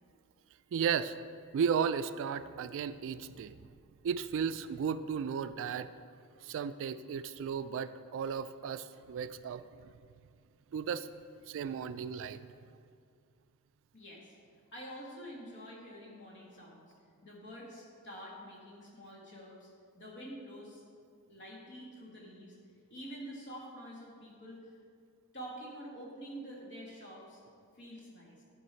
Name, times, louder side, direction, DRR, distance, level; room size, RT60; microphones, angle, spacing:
voice 1, 0.7-1.2 1.5-3.6 4.0-5.9 6.4-9.9 10.7-11.1 11.5-12.4, right 7 dB, 60° right, 14 dB, 0.3 m, -34 dB
voice 2, 13.9-14.4 14.7-16.9 17.2-19.7 19.9-20.8 21.3-22.6 22.9-24.8 25.3-27.4 27.8-28.4, equal, 55° left, -3 dB, 2.0 m, -47 dB
11.0 x 4.7 x 4.4 m, 2.3 s
head